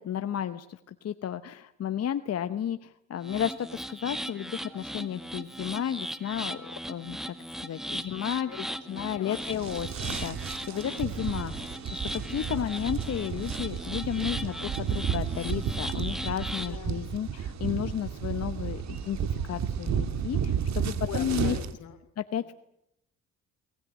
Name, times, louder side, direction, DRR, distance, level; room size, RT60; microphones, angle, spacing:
voice 1, 0.0-6.6 6.9-11.5 11.9-19.2 19.5-21.6 22.2-22.5, left 9 dB, 55° left, 11 dB, 1.0 m, -33 dB
sound 1, 3.2-16.8, equal, ahead, 1.8 m, -38 dB
voice 2, 8.5-8.8 9.1-9.5 14.2-14.6 16.6-16.9 20.7-22.0 22.4-22.5, left 10 dB, 80° left, 10 dB, 2.9 m, -44 dB
sound 2, 9.3-21.7, right 7 dB, 65° right, 2.0 m, -32 dB
22.5 x 19.5 x 9.4 m, 0.80 s
cardioid pair, 90°, 30 cm